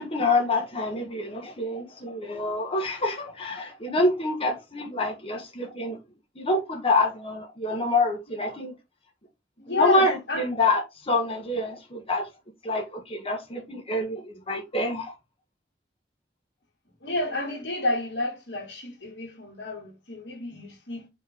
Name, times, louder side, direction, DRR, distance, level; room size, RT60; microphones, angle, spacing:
voice 1, 0.0-6.0 6.4-8.7 9.7-12.3 12.6-15.1, left 2 dB, 35° left, 1.5 m, -26 dB
voice 2, 9.6-10.5 17.0-21.1, left 2 dB, 85° left, 2.6 m, -30 dB
5.7 x 3.5 x 5.1 m
head